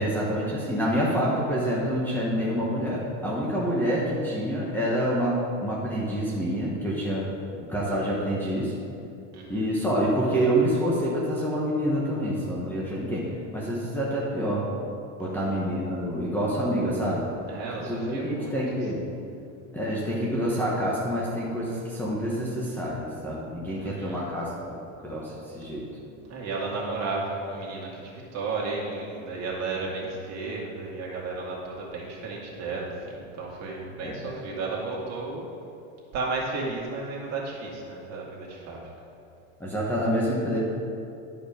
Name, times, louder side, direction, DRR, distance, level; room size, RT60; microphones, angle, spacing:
voice 1, 0.0-7.3 7.7-8.7 9.5-14.7 15.2-17.3 17.8-19.0 19.7-24.8 25.0-25.9 34.0-34.3 39.6-40.6, equal, 5° left, -6 dB, 1.2 m, -27 dB
voice 2, 9.3-9.6 15.2-15.6 17.5-18.6 23.8-24.2 26.3-35.5 36.1-38.8, right 3 dB, 40° right, -4 dB, 2.3 m, -33 dB
11.5 x 5.1 x 5.0 m, 2.6 s
supercardioid pair, 140°, 39 cm